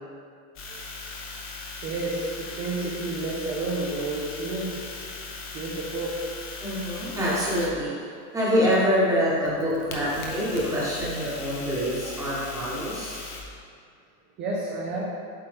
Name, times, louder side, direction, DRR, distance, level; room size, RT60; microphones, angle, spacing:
sound 1, 0.6-7.7 8.7-13.4, left 4 dB, 30° left, 0.7 m, -39 dB
voice 1, 1.8-6.1 14.4-15.1, right 2 dB, 20° right, -4 dB, 0.5 m, -31 dB
voice 2, 6.6-7.9 8.3-13.3, equal, 5° right, -8 dB, 1.2 m, -25 dB
8.0 x 4.2 x 3.5 m, 2.3 s
supercardioid pair, 170°, 44 cm